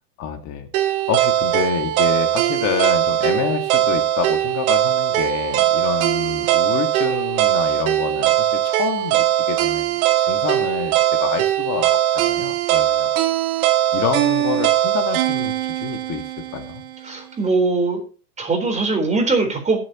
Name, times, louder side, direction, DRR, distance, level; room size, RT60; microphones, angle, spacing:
voice 1, 0.2-0.7 1.1-13.1 13.9-16.2 16.5-16.8, left 8 dB, 35° left, 6 dB, 1.8 m, -27 dB
sound 1, 0.7-16.8, right 13 dB, 55° right, 1.9 m, -20 dB
voice 2, 17.0-18.0 18.4-19.8, right 3 dB, 15° right, 3 dB, 3.9 m, -21 dB
20.5 x 7.8 x 2.9 m, 0.39 s
hypercardioid pair, 120°, 48 cm